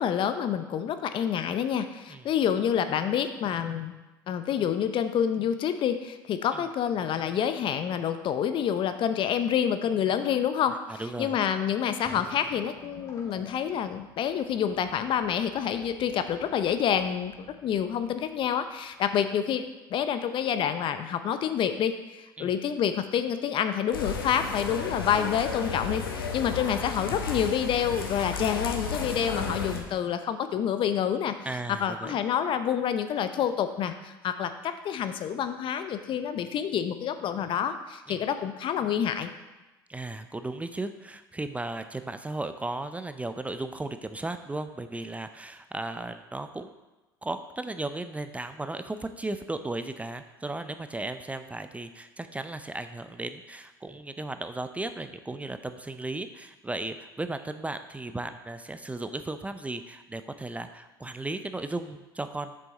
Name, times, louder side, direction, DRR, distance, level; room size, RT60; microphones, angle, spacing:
voice 1, 0.0-3.9 4.3-19.6 19.9-31.4 31.8-39.3, left 8 dB, 45° left, 10 dB, 0.7 m, -28 dB
voice 2, 11.0-11.3 22.4-22.5 31.5-32.2 38.1-38.3 39.9-46.7 47.2-62.5, right 2 dB, 10° right, 9 dB, 0.5 m, -35 dB
sound 1, 12.0-19.2, left 1 dB, 25° left, 2.0 m, -52 dB
sound 2, 23.9-29.8, left 5 dB, 90° left, 0.9 m, -33 dB
7.6 x 6.3 x 4.1 m, 1.1 s
hypercardioid pair, 75°, 12 cm